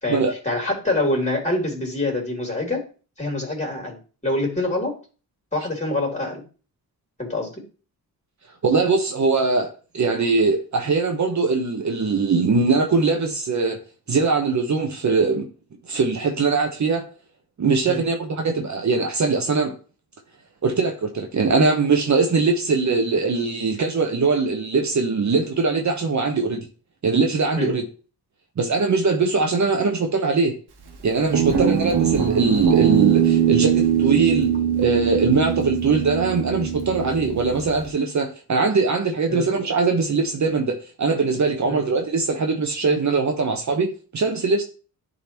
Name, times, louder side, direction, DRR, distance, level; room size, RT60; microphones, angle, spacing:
voice 1, 0.0-2.8 3.2-5.0 5.5-6.4 7.2-7.6 17.8-18.0 27.6-27.8 31.5-31.7 39.3-39.5 41.6-41.9, left 2 dB, 20° left, 3.3 m, -26 dB
voice 2, 8.6-13.8 14.1-15.5 15.9-17.0 17.6-19.7 20.6-26.7 27.0-27.9 28.6-30.6 31.0-34.5 34.8-44.6, right 4 dB, 50° right, 1.1 m, -21 dB
Guitar, 31.3-37.9, right 9 dB, 80° right, 1.4 m, -21 dB
10.0 x 4.0 x 3.0 m
cardioid pair, 70°, 38 cm